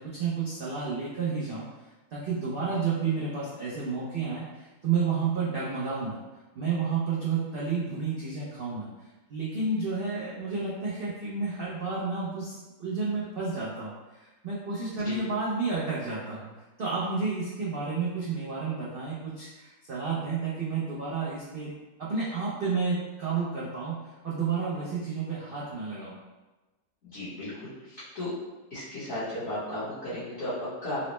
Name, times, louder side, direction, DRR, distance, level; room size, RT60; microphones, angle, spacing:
voice 1, 0.0-1.7 2.1-6.2 6.6-8.9 9.3-16.5 16.8-26.2, right 4 dB, 85° right, -7 dB, 0.5 m, -31 dB
voice 2, 27.1-28.3 28.7-31.1, left 1 dB, 50° left, -13 dB, 1.3 m, -35 dB
3.9 x 2.1 x 3.0 m, 1.1 s
omnidirectional pair, 1.7 m